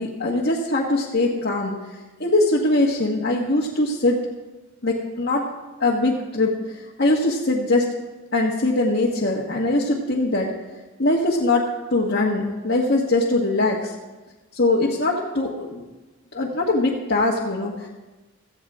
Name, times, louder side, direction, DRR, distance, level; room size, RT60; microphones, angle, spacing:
voice 1, 0.0-1.7 2.2-4.2 4.8-5.4 5.8-7.8 8.3-10.5 11.0-11.6 11.9-13.9 14.5-15.8 16.3-17.9, left 2 dB, 50° left, -4 dB, 1.6 m, -22 dB
16.5 x 15.0 x 3.7 m, 1.1 s
head